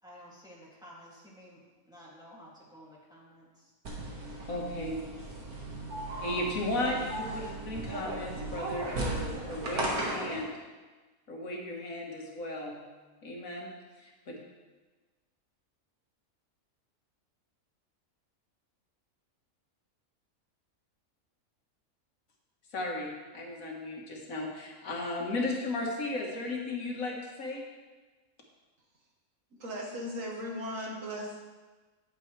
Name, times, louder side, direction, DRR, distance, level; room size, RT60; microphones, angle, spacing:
voice 1, 0.0-3.7, equal, 5° right, -6 dB, 2.3 m, -53 dB
sound 1, 3.8-10.4, right 2 dB, 90° right, 2.0 m, -36 dB
voice 2, 4.5-5.0 6.2-10.5 11.3-12.8 13.2-13.7 14.0-14.4 22.7-27.6, left 2 dB, 70° left, -1 dB, 1.8 m, -35 dB
voice 3, 29.6-31.4, equal, 65° right, -1 dB, 1.6 m, -37 dB
9.9 x 8.9 x 3.2 m, 1.3 s
omnidirectional pair, 1.5 m